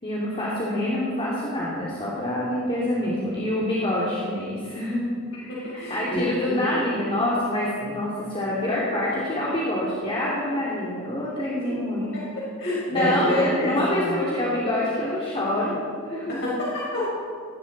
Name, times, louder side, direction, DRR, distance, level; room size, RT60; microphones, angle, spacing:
voice 1, 0.0-5.1 5.3-12.2 12.9-15.8 16.0-16.4, left 1 dB, 25° left, -6 dB, 2.7 m, -26 dB
voice 2, 5.5-6.6 12.1-14.2 16.3-17.1, left 1 dB, 55° left, -6 dB, 4.6 m, -27 dB
20.0 x 16.5 x 4.2 m, 2.2 s
head